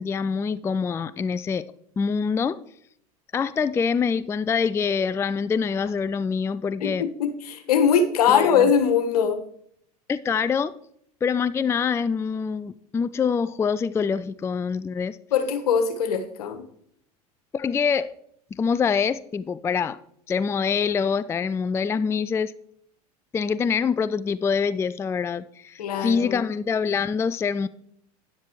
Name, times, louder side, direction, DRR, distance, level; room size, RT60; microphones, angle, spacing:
voice 1, 0.0-1.7 2.0-2.6 3.3-7.1 8.3-8.7 10.1-10.7 11.2-15.2 17.5-18.1 18.5-20.0 20.3-22.5 23.3-27.7, left 6 dB, 15° left, 0.3 m, -25 dB
voice 2, 6.8-9.4 15.3-16.6 25.8-26.4, left 7 dB, 75° left, 1.4 m, -21 dB
12.5 x 9.8 x 3.1 m
hypercardioid pair, 85°, 20 cm